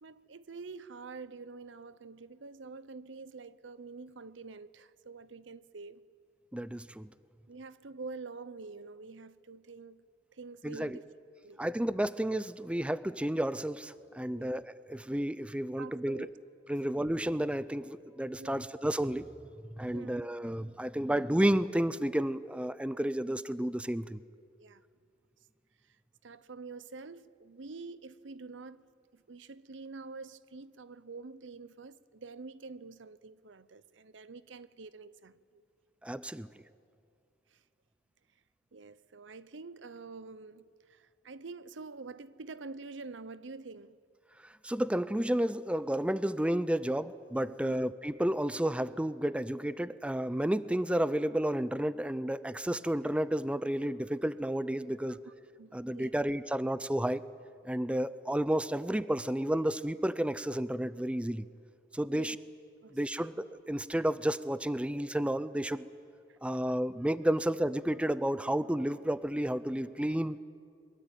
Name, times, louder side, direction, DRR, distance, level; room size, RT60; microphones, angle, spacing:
voice 1, 0.0-6.0 7.5-10.1 10.3-11.0 11.4-11.6 14.3-14.6 15.8-16.3 18.4-18.7 19.9-20.3 24.6-24.8 25.9-26.0 26.2-35.4 37.5-37.6 38.7-44.0 47.6-47.7 55.0-55.3 55.6-56.1 62.1-62.4 62.8-63.2 66.3-66.4, right 4 dB, 85° right, 0.7 m, -47 dB
voice 2, 6.5-7.1 10.6-11.0 11.6-16.3 16.7-19.3 19.8-24.2 36.0-36.5 44.6-55.2 55.7-57.3 57.6-61.5 61.9-62.3 62.9-65.9 66.4-70.4, right 1 dB, 5° right, 0.5 m, -31 dB
23.0 x 22.0 x 9.0 m
head